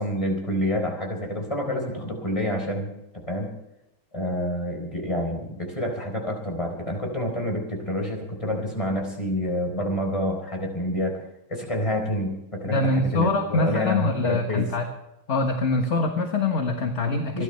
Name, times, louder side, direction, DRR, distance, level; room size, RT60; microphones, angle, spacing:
voice 1, 0.0-3.5 4.1-11.2 11.5-14.7 17.3-17.4, equal, 15° left, 2 dB, 4.1 m, -28 dB
voice 2, 12.6-14.9 15.3-17.4, left 3 dB, 40° left, 4 dB, 1.5 m, -24 dB
27.5 x 12.5 x 3.3 m, 0.88 s
omnidirectional pair, 2.3 m